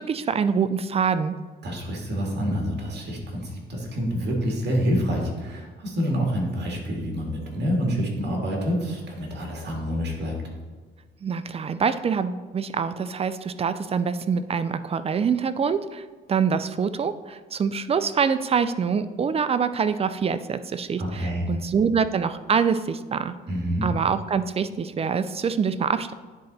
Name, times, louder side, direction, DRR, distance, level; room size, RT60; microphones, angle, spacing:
voice 1, 0.0-1.3 11.2-16.0 16.3-23.3 23.8-26.1, right 6 dB, 30° right, 13 dB, 0.4 m, -25 dB
voice 2, 1.6-10.4 21.0-21.5 23.5-23.9, equal, 60° right, 0 dB, 2.0 m, -27 dB
9.7 x 3.9 x 4.2 m, 1.4 s
cardioid pair, 90°, 20 cm